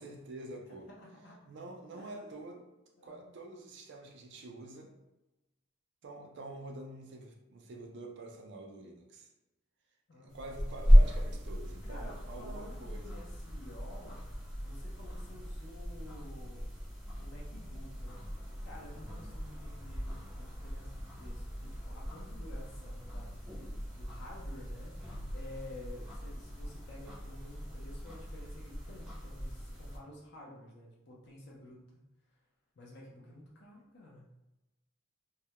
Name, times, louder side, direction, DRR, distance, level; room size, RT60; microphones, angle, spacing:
voice 1, 0.0-0.9 1.5-2.6 3.0-4.9 6.0-9.3 10.1-13.2 19.0-19.2, right 2 dB, 60° right, 2 dB, 0.3 m, -47 dB
voice 2, 0.9-1.4 1.9-2.5 3.0-3.3 10.1-10.5 11.9-14.3 14.6-16.7 17.2-18.2 18.6-25.0 25.3-32.0 32.8-34.3, left 1 dB, 55° left, -3 dB, 0.5 m, -52 dB
sound 1, 10.3-30.0, equal, 5° right, 0.6 m, -33 dB
2.2 x 2.0 x 2.8 m, 0.99 s
head